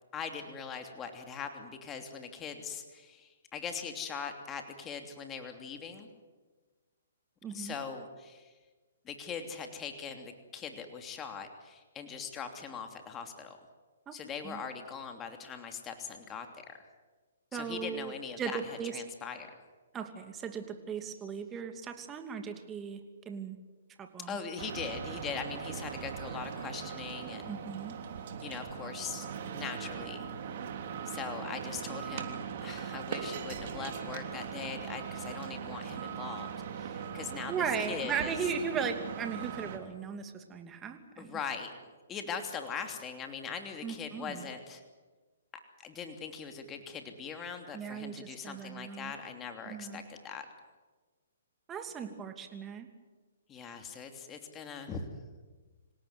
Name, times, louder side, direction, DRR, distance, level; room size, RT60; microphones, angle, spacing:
voice 1, 0.1-6.1 7.5-8.5 9.0-13.6 14.1-16.7 17.5-19.5 24.3-27.6 28.4-29.3 29.5-30.3 31.0-38.4 41.2-41.7 42.1-44.8 45.8-50.4 53.5-55.1, left 6 dB, 20° left, 5 dB, 3.0 m, -41 dB
voice 2, 7.4-7.7 14.1-14.2 14.4-14.6 17.5-19.0 19.9-23.6 24.0-24.4 27.5-27.9 37.5-41.3 43.8-44.5 47.7-49.1 49.6-50.0 51.7-52.9, right 6 dB, 15° right, 6 dB, 2.8 m, -37 dB
sound 1, 24.6-39.8, right 7 dB, 50° right, 3.3 m, -40 dB
26.5 x 18.0 x 9.6 m, 1.3 s
hypercardioid pair, 140°, 0 cm